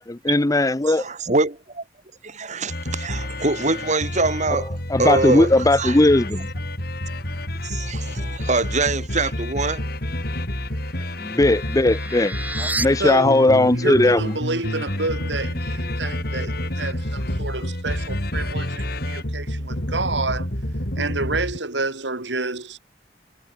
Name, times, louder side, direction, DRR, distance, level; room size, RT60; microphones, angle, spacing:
voice 1, 0.1-1.1 4.9-6.5 11.2-14.3, left 2 dB, 20° left, 0.7 m, -18 dB
voice 2, 0.9-1.8 2.2-5.5 5.8-6.0 7.6-9.8, right 3 dB, 45° right, 3.2 m, -24 dB
sound 1, 2.7-21.6, left 1 dB, 60° left, 5.8 m, -29 dB
sound 2, 10.6-12.9, right 2 dB, 10° right, 5.9 m, -32 dB
voice 3, 13.0-20.5 21.0-22.8, right 3 dB, 90° right, 3.5 m, -29 dB
head